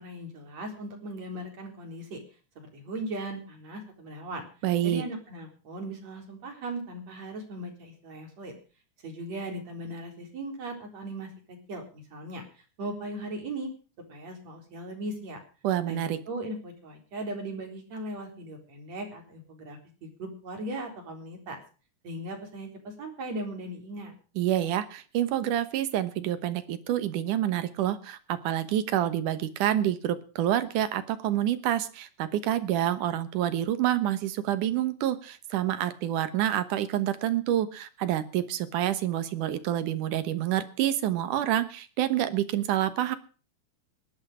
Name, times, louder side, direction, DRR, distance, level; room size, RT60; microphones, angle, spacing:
voice 1, 0.0-2.2 2.6-4.4 4.8-8.5 9.0-12.4 12.8-13.7 14.1-15.4 15.9-21.6 22.0-24.1, right 1 dB, 55° right, 3 dB, 5.1 m, -38 dB
voice 2, 4.6-5.0 15.6-16.2 24.4-43.2, right 12 dB, 75° right, 12 dB, 2.7 m, -28 dB
18.0 x 11.5 x 4.9 m, 0.37 s
omnidirectional pair, 3.7 m